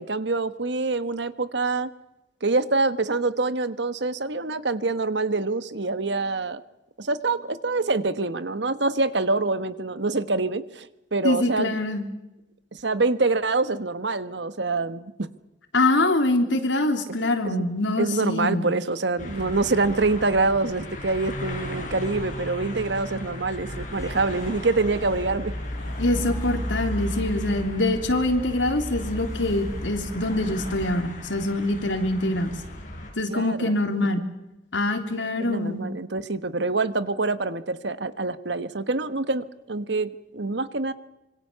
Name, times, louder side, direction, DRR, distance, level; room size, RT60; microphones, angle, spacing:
voice 1, 0.0-1.9 2.4-6.6 7.0-11.8 12.7-15.3 17.4-17.6 18.0-25.5 33.3-33.8 35.4-40.9, right 3 dB, 65° right, 13 dB, 1.2 m, -25 dB
voice 2, 11.2-12.1 15.7-18.7 26.0-32.5 33.2-34.2 34.7-35.8, left 2 dB, 85° left, 6 dB, 3.3 m, -24 dB
sound 1, 19.2-33.1, left 1 dB, 45° left, 6.5 m, -38 dB
sound 2, 23.7-30.9, equal, 20° left, 4.4 m, -34 dB
26.0 x 23.5 x 6.9 m, 1.0 s
head